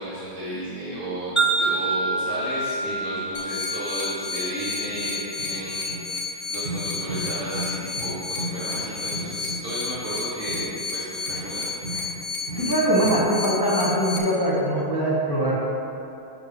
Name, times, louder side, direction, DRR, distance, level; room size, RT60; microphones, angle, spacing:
voice 1, 0.0-11.7, right 1 dB, 75° right, -10 dB, 2.2 m, -33 dB
Wind chime, 1.4-5.6, right 3 dB, ahead, 1.2 m, -28 dB
high piched alarm, 3.3-14.2, left 4 dB, 60° left, 1.0 m, -32 dB
sound 1, 4.4-4.5 4.9-5.1 5.4-5.6 5.9-6.0 6.6-6.8 7.1-7.3 7.5-7.7 8.0-8.1 8.4-9.6 9.9-10.1 10.5-10.6 11.3-11.4 11.8-12.1 12.5-12.6 13.0-13.2, right 2 dB, 45° right, 2.3 m, -34 dB
voice 2, 12.6-15.6, right 1 dB, 20° left, -6 dB, 0.6 m, -22 dB
9.0 x 4.5 x 4.9 m, 2.7 s
omnidirectional pair, 2.3 m